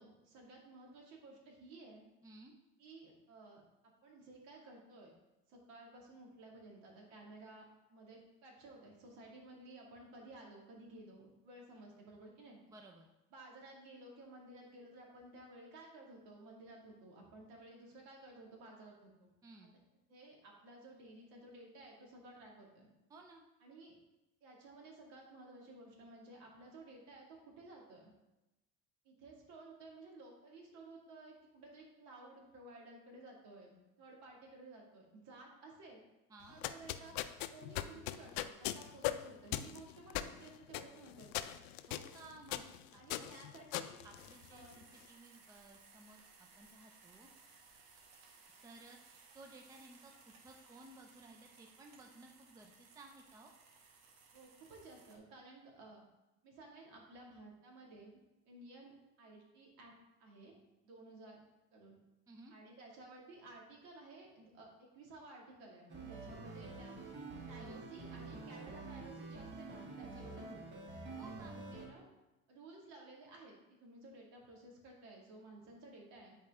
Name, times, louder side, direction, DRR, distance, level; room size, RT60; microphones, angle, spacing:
voice 1, 0.0-2.1 2.8-3.6 4.0-5.1 5.5-12.6 13.3-19.3 20.1-22.9 23.6-24.0 24.4-28.1 29.0-36.0 36.5-37.2 37.5-41.5 43.0-44.0 44.5-44.8 54.3-56.0 56.4-58.2 58.5-59.9 60.2-60.6 60.8-61.4 61.7-62.0 62.5-64.7 64.9-67.0 67.5-72.1 72.5-76.4, right 2 dB, 70° right, -1 dB, 2.3 m, -55 dB
voice 2, 2.2-2.6 12.7-13.1 19.4-19.8 23.1-23.5 36.3-36.6 41.9-43.3 44.0-47.3 48.6-53.5 62.3-62.5 67.6-67.8 70.1-70.3 71.2-71.6, right 2 dB, 10° right, 2 dB, 0.5 m, -57 dB
sound 1, 36.4-44.8, left 13 dB, 85° left, 0.5 m, -41 dB
sound 2, 44.1-55.2, right 4 dB, 85° right, 1.4 m, -62 dB
sound 3, 65.9-71.9, right 3 dB, 35° right, 1.4 m, -48 dB
9.8 x 4.3 x 3.6 m, 1.0 s
cardioid pair, 150°, 31 cm